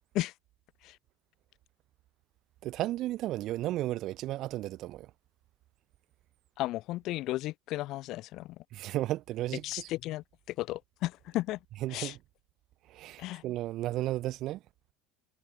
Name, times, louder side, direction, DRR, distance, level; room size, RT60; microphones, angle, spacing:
voice 1, 2.6-5.1 8.7-9.9 11.8-12.2 12.9-14.6, right 15 dB, 50° right, 1.4 m, -34 dB
voice 2, 6.6-8.6 9.6-11.6 11.9-12.1 13.2-13.4, left 17 dB, 55° left, 0.5 m, -34 dB
supercardioid pair, 125°, 0 cm